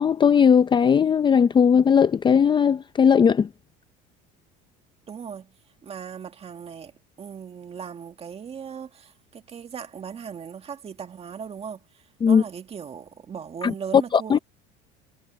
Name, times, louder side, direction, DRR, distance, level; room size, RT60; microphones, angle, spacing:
voice 1, 0.0-3.5 12.2-12.4 13.6-13.7 14.1-14.4, left 7 dB, 20° left, 0.6 m, -18 dB
voice 2, 5.1-5.6 5.8-14.4, right 7 dB, 30° right, 2.0 m, -38 dB
cardioid pair, 130°, 21 cm